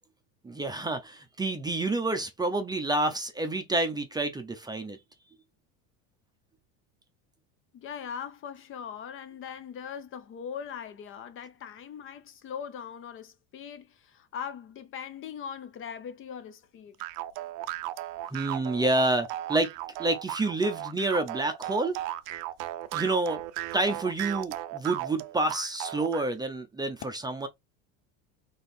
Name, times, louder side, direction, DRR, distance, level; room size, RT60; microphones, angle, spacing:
voice 1, 0.4-5.0 18.3-19.7 20.0-22.0 22.9-23.4 23.7-27.5, right 2 dB, 10° right, 0.6 m, -28 dB
voice 2, 7.7-17.0, left 7 dB, 35° left, 0.6 m, -40 dB
sound 1, 17.0-26.3, right 14 dB, 55° right, 0.6 m, -36 dB
4.3 x 3.1 x 3.5 m
supercardioid pair, 135°, 38 cm